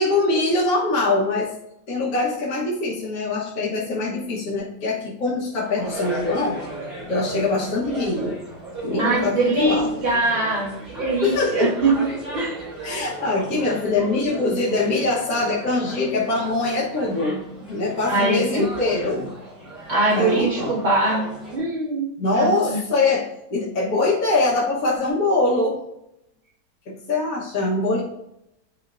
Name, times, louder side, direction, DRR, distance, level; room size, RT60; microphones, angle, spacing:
voice 1, 0.0-1.5 1.9-6.6 7.0-8.4 8.8-10.0 11.2-11.7 12.8-19.3 20.1-20.7 22.2-25.8 26.9-28.0, left 2 dB, 60° left, -6 dB, 1.7 m, -23 dB
sound 1, 5.5-21.6, right 1 dB, 80° right, 3.4 m, -36 dB
voice 2, 9.0-11.9 12.3-12.6 18.0-18.7 19.9-21.2 21.5-22.8, right 2 dB, 40° right, -6 dB, 2.4 m, -22 dB
9.4 x 4.6 x 2.6 m, 0.80 s
omnidirectional pair, 1.8 m